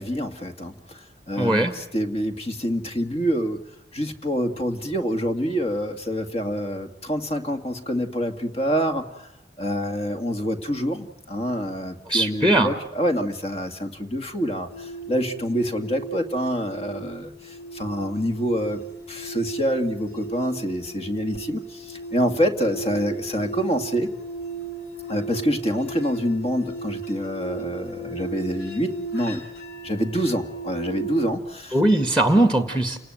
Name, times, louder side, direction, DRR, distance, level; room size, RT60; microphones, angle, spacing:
voice 1, 0.0-3.6 3.9-9.3 9.6-18.8 19.1-24.1 25.1-29.4 29.8-31.8, equal, 35° left, 6 dB, 2.3 m, -26 dB
voice 2, 1.4-1.7 12.1-12.7 31.7-33.0, right 1 dB, 5° left, 8 dB, 1.8 m, -19 dB
sound 1, 14.7-31.3, right 4 dB, 60° left, 4.9 m, -36 dB
30.0 x 19.0 x 9.3 m, 0.85 s
head